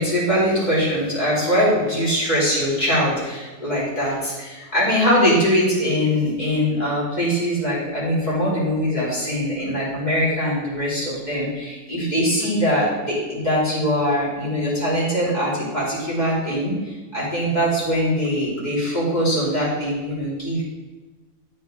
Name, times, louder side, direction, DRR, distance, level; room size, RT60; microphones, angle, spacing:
voice 1, 0.0-20.6, equal, 25° left, -8 dB, 3.2 m, -22 dB
12.5 x 4.5 x 3.8 m, 1.2 s
omnidirectional pair, 1.7 m